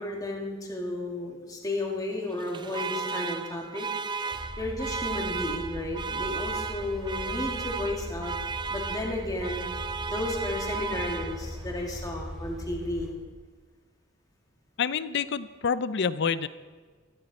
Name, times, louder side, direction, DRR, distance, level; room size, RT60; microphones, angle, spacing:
voice 1, 0.0-3.9 4.6-8.3 8.7-9.7 10.0-13.1, left 2 dB, 20° left, -1 dB, 2.5 m, -33 dB
Alarm, 2.3-11.7, right 5 dB, 25° right, 0.5 m, -35 dB
sound 1, 4.3-13.1, equal, ahead, 2.8 m, -40 dB
voice 2, 14.8-16.5, left 6 dB, 60° left, 15 dB, 0.6 m, -27 dB
16.5 x 14.0 x 4.3 m, 1.4 s
head